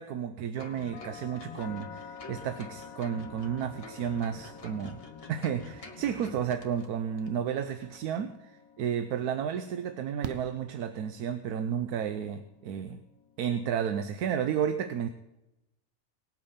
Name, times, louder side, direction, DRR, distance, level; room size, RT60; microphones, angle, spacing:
voice 1, 0.0-5.0 5.3-13.0 13.4-15.1, right 8 dB, 80° right, 9 dB, 1.2 m, -32 dB
sound 1, 0.6-14.4, left 7 dB, 75° left, 1.1 m, -51 dB
sound 2, 0.6-6.9 7.2-7.3, left 3 dB, 40° left, 1.7 m, -47 dB
Fireworks, 8.5-8.6 10.2-11.5 13.3-13.4 13.6-13.7, right 7 dB, 55° right, 0.8 m, -42 dB
19.0 x 8.6 x 5.6 m, 0.93 s
omnidirectional pair, 1.6 m